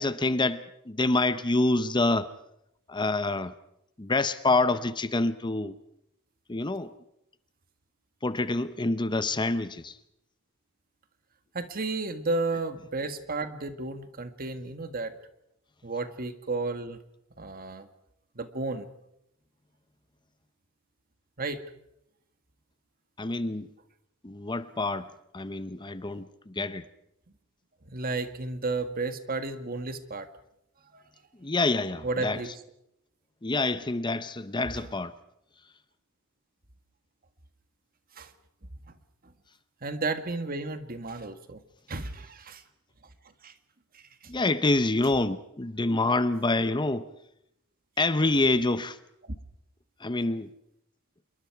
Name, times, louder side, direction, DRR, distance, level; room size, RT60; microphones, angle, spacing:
voice 1, 0.0-2.3 2.9-3.5 4.0-5.7 6.5-6.9 8.2-10.0 23.2-23.7 24.2-25.1 25.3-26.9 31.4-32.4 33.4-35.1 44.3-47.1 48.0-49.0 50.0-50.5, left 2 dB, 20° left, 0.8 m, -27 dB
voice 2, 11.5-15.1 15.8-17.0 17.4-17.9 18.4-18.9 21.4-21.6 27.8-30.3 30.9-31.0 32.0-32.5 38.2-38.3 38.8-39.0 39.2-39.3 39.8-41.6 41.9-42.6 43.4-43.5 43.9-44.0 49.2-49.4, right 3 dB, 45° right, 1.7 m, -33 dB
27.0 x 22.5 x 4.8 m
head